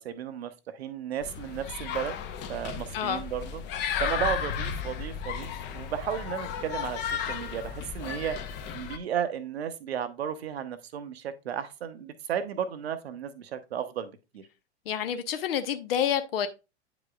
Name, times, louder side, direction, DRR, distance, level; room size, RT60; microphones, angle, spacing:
voice 1, 0.0-2.1 2.5-3.6 4.0-8.4 8.7-14.4, right 8 dB, 65° right, 0.9 m, -34 dB
sound 1, 1.2-9.0, left 7 dB, 30° left, 0.8 m, -34 dB
voice 2, 2.9-3.2 14.9-16.5, left 9 dB, 55° left, 0.9 m, -28 dB
8.9 x 5.1 x 2.3 m
figure-of-eight pair, 95°, 34 cm